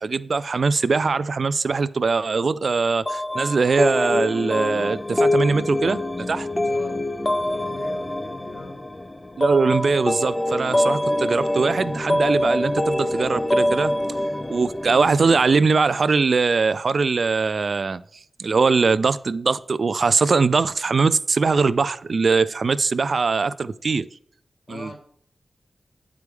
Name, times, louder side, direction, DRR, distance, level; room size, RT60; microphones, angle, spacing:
voice 1, 0.0-6.0 6.3-6.5 9.4-13.9 14.5-18.0 18.4-24.1 24.7-24.9, right 4 dB, 65° right, 16 dB, 0.3 m, -21 dB
sound 1, 3.1-15.6, left 1 dB, 20° left, 0.5 m, -25 dB
voice 2, 6.7-7.0 7.3-8.8 24.7-24.9, left 2 dB, 60° left, 1 dB, 2.0 m, -40 dB
9.3 x 4.7 x 3.5 m, 0.63 s
wide cardioid pair, 90°, 0 cm